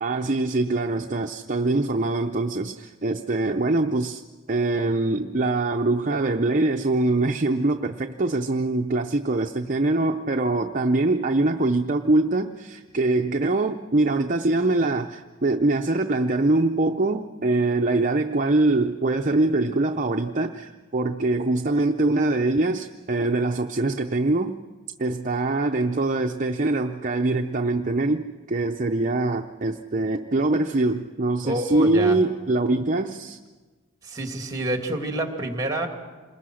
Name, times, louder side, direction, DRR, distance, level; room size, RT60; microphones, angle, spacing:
voice 1, 0.0-4.2 4.5-24.6 25.0-33.4, right 2 dB, 40° right, 5 dB, 0.6 m, -23 dB
voice 2, 31.4-32.2 34.0-35.9, right 1 dB, 20° right, 4 dB, 2.6 m, -28 dB
27.5 x 21.0 x 6.3 m, 1.4 s
head